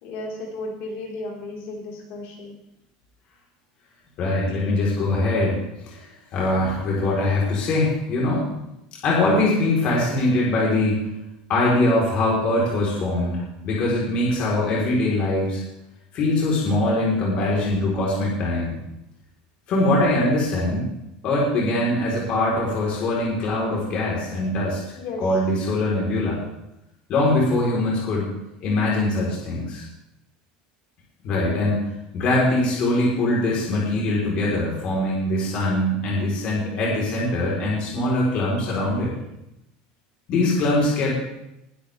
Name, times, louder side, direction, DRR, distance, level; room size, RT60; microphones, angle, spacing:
voice 1, 0.0-2.5 25.0-25.2, left 2 dB, 55° left, -2 dB, 4.8 m, -34 dB
voice 2, 4.2-5.6 5.8-6.1 6.3-8.5 9.0-11.0 11.5-15.6 16.1-18.8 19.7-20.9 21.2-24.8 25.2-26.4 27.1-28.2 28.6-29.8 31.2-31.8 32.1-39.1 40.3-41.1, left 2 dB, 40° left, -4 dB, 4.4 m, -22 dB
21.0 x 12.0 x 3.6 m, 0.87 s
cardioid pair, 165°, 3 cm